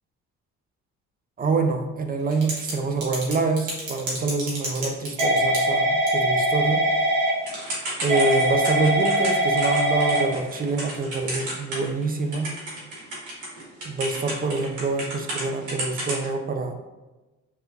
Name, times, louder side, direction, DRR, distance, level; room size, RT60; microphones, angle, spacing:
voice 1, 1.4-6.8 8.0-12.5 13.8-16.8, right 3 dB, 30° right, 5 dB, 0.4 m, -26 dB
Typing / Telephone, 2.3-2.7 3.0-12.0 12.3-15.4 15.7-16.2, right 1 dB, 85° right, 1.2 m, -23 dB
3.2 x 3.0 x 2.3 m, 1.1 s
cardioid pair, 90°, 30 cm